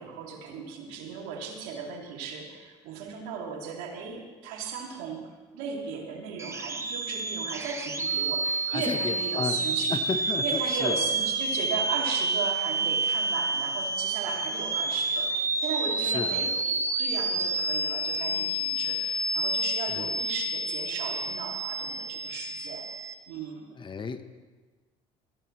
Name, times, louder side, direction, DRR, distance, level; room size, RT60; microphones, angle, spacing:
voice 1, 0.0-10.0 10.4-22.9 23.3-23.7, right 6 dB, 80° right, 0 dB, 2.8 m, -37 dB
sound 1, 6.4-23.1, right 2 dB, 20° right, 1.3 m, -29 dB
voice 2, 8.7-10.9 16.0-16.5 19.9-20.1 23.7-24.2, left 5 dB, 35° left, 10 dB, 1.1 m, -33 dB
21.5 x 14.5 x 3.3 m, 1.3 s
supercardioid pair, 75°, 15 cm